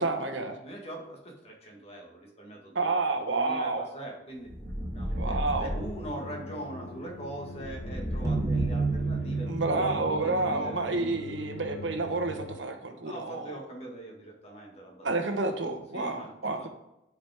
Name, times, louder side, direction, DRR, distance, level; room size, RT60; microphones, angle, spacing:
voice 1, 0.0-0.6 2.7-3.9 5.2-5.7 9.5-13.5 15.0-16.7, right 3 dB, 80° right, 5 dB, 1.1 m, -29 dB
voice 2, 0.6-3.0 3.3-4.6 4.9-11.2 12.9-16.3 16.6-16.7, right 1 dB, 35° left, 0 dB, 1.8 m, -42 dB
sound 1, 4.4-6.0 7.5-9.4, equal, 5° left, 1.8 m, -34 dB
sound 2, 5.7-12.6, left 2 dB, 85° left, 0.8 m, -43 dB
sound 3, 8.2-11.5, right 3 dB, 15° right, 1.0 m, -31 dB
11.5 x 4.9 x 3.5 m, 0.88 s
head